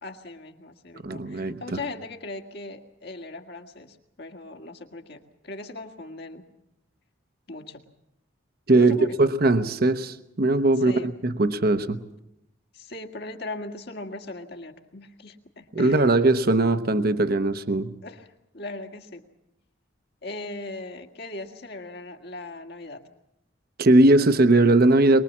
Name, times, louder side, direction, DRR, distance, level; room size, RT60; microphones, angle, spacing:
voice 1, 0.0-6.4 7.5-7.8 8.7-9.2 10.8-11.2 12.7-16.1 18.0-19.2 20.2-23.0, left 2 dB, 55° left, 1.8 m, -39 dB
voice 2, 1.0-1.8 8.7-12.0 15.7-17.9 23.8-25.2, right 2 dB, 50° right, 1.0 m, -20 dB
23.5 x 21.5 x 7.3 m
head